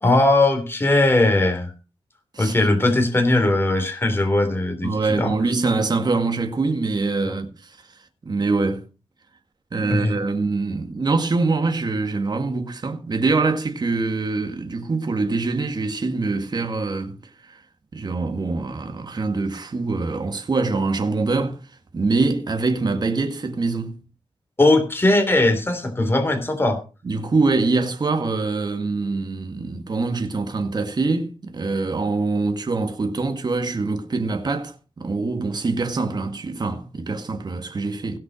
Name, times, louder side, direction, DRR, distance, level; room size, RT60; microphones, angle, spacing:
voice 1, 0.0-1.7 2.4-5.3 9.7-10.2 24.6-26.8, left 2 dB, 20° left, 3.2 m, -19 dB
voice 2, 4.8-7.8 8.2-8.8 9.7-17.2 17.4-17.6 17.9-21.6 21.9-24.0 27.0-38.2, right 3 dB, 40° right, 1.9 m, -24 dB
17.0 x 5.9 x 6.2 m
wide cardioid pair, 100°, 10 cm